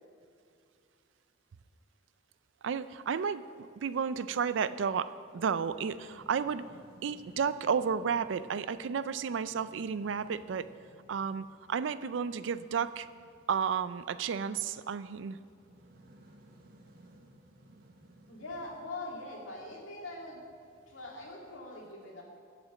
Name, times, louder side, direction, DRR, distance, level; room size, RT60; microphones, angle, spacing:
voice 1, 2.6-6.7 7.0-10.7 11.1-13.1 13.5-15.4, right 6 dB, 65° right, 14 dB, 0.4 m, -32 dB
sound 1, 5.2-21.5, right 1 dB, 50° right, 1.1 m, -60 dB
voice 2, 18.3-20.4 20.9-22.2, left 2 dB, 90° left, -2 dB, 2.2 m, -42 dB
11.5 x 5.1 x 7.1 m, 2.4 s
head